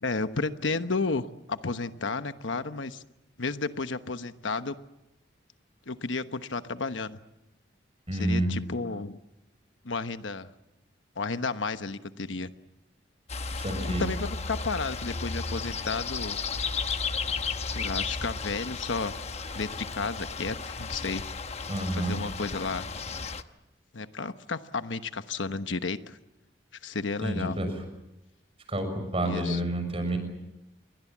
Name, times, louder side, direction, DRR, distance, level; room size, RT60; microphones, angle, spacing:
voice 1, 0.0-3.0 3.4-4.8 5.9-7.2 8.2-9.2 9.8-10.5 11.2-12.5 13.8-16.4 17.7-19.2 19.5-21.2 22.0-22.9 23.9-26.2 26.8-27.6 29.3-29.6, left 3 dB, 85° left, 10 dB, 1.1 m, -32 dB
voice 2, 8.1-8.5 13.5-14.1 21.7-22.2 27.2-27.7 28.7-30.2, right 1 dB, 30° right, 7 dB, 6.3 m, -29 dB
sound 1, 13.3-23.4, left 4 dB, 35° left, 1.0 m, -34 dB
28.5 x 23.0 x 7.4 m, 0.94 s
head